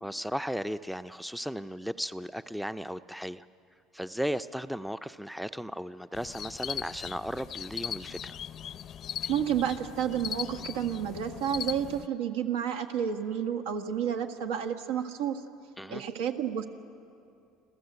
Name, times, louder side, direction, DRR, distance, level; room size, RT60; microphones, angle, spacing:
voice 1, 0.0-3.4 3.9-8.4 15.8-16.0, equal, ahead, 13 dB, 0.4 m, -35 dB
sound 1, 6.1-12.1, left 10 dB, 45° left, 0.5 m, -39 dB
voice 2, 9.3-15.4 15.9-16.7, right 9 dB, 90° right, 6 dB, 1.5 m, -30 dB
28.0 x 14.5 x 8.1 m, 2.5 s
supercardioid pair, 110°, 0 cm